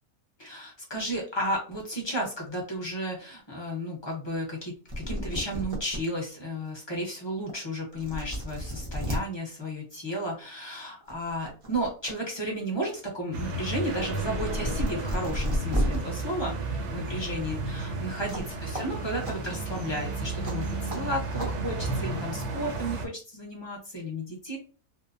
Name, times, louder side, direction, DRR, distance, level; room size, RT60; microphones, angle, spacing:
voice 1, 0.4-24.6, equal, 30° left, -1 dB, 0.5 m, -33 dB
sound 1, 4.6-4.7 4.9-6.0 6.5-6.6 7.5-7.6 7.9-9.2 10.5-10.7 11.1-12.1 12.5-16.0 18.3-18.5 18.7-18.8 19.2-19.3 20.4-20.5 20.9-21.0 21.4-21.5, equal, 40° right, 0.4 m, -32 dB
sound 2, 13.3-23.1, right 2 dB, 60° right, 0.8 m, -33 dB
2.6 x 2.1 x 2.5 m, 0.36 s
omnidirectional pair, 1.6 m